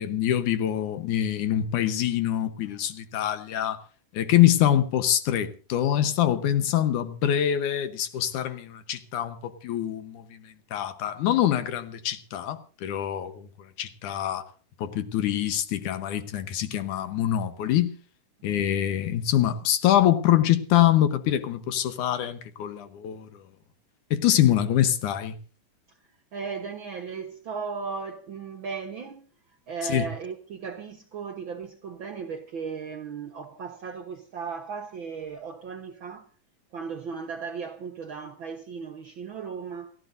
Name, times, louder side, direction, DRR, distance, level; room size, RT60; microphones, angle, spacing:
voice 1, 0.0-3.8 4.1-10.4 10.7-13.5 13.8-14.4 14.8-17.9 18.4-23.3 24.1-25.4 29.9-30.1, left 11 dB, 75° left, 2.5 m, -24 dB
voice 2, 26.3-36.3 36.7-39.9, right 5 dB, 60° right, 1.3 m, -36 dB
29.5 x 13.5 x 2.6 m
omnidirectional pair, 3.6 m